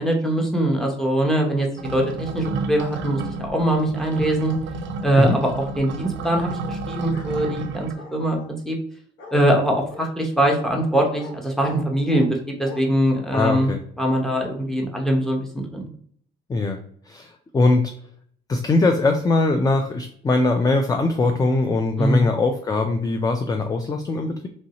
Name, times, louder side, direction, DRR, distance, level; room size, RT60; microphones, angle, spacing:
voice 1, 0.0-4.5 5.0-8.8 9.3-13.7 14.0-15.9 22.0-22.3, right 1 dB, ahead, 1 dB, 0.8 m, -22 dB
sound 1, 1.8-8.0, right 3 dB, 70° right, 0.5 m, -31 dB
Bark, 7.1-7.3 7.9-8.5 9.2-9.4 9.9-10.1 10.5-10.7 11.2-11.3 11.6-12.3 12.6-12.8, left 3 dB, 75° left, 1.0 m, -40 dB
voice 2, 13.3-13.8 16.5-16.8 17.1-17.9 18.5-24.5, left 3 dB, 20° left, 5 dB, 0.3 m, -21 dB
3.1 x 2.6 x 2.8 m, 0.62 s
cardioid pair, 90°, 20 cm